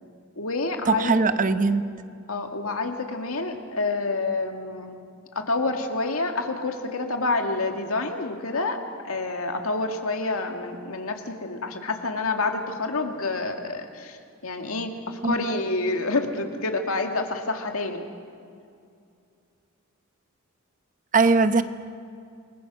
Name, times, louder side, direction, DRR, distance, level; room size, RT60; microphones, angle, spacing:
voice 1, 0.4-1.2 2.3-5.0 5.3-8.8 9.0-14.2 14.4-18.0, left 3 dB, 75° left, 4 dB, 2.2 m, -28 dB
voice 2, 0.9-1.9 15.2-15.4 21.1-21.6, right 4 dB, 40° right, 10 dB, 0.9 m, -20 dB
28.5 x 21.5 x 6.4 m, 2.4 s
head